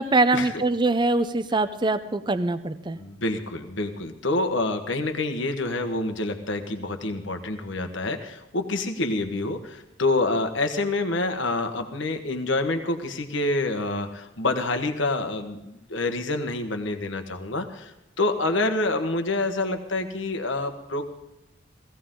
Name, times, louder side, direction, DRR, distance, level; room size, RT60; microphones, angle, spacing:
voice 1, 0.0-3.0, right 2 dB, 25° right, 11 dB, 0.6 m, -23 dB
voice 2, 3.0-21.0, left 2 dB, 75° left, 6 dB, 1.4 m, -27 dB
17.5 x 16.0 x 3.8 m, 0.93 s
head